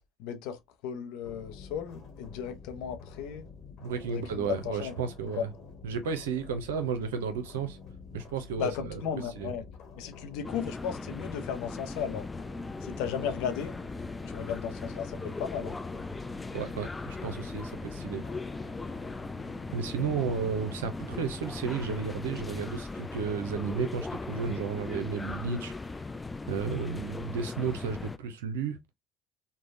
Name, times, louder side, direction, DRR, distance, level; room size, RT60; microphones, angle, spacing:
voice 1, 0.2-3.5 4.0-4.9 5.2-5.5 8.6-9.6 9.9-12.3 12.8-13.8 14.3-15.8, left 8 dB, 70° left, 0.6 m, -35 dB
sound 1, 1.2-20.5, left 5 dB, 50° left, 1.1 m, -48 dB
voice 2, 3.8-5.5 5.8-7.8 8.1-9.0 9.4-9.5 16.5-18.2 19.7-25.7 26.5-28.8, right 6 dB, 80° right, 0.5 m, -33 dB
sound 2, 10.4-28.2, left 3 dB, 20° left, 0.3 m, -38 dB
3.2 x 2.1 x 2.5 m
hypercardioid pair, 70°, 0 cm